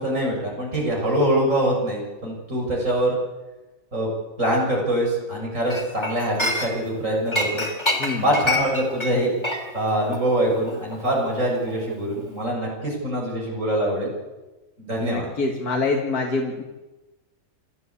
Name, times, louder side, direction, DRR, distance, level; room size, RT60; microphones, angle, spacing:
voice 1, 0.0-3.2 3.9-4.1 4.4-7.6 8.2-9.3 9.7-14.1 14.8-15.3, right 1 dB, 60° right, -1 dB, 7.1 m, -24 dB
Chink clink, 5.7-7.0 7.3-11.9 12.2-12.4, left 1 dB, 20° left, 3.0 m, -28 dB
voice 2, 15.0-16.6, left 3 dB, 85° left, 1 dB, 2.4 m, -25 dB
27.5 x 13.5 x 8.5 m, 1.1 s
omnidirectional pair, 1.6 m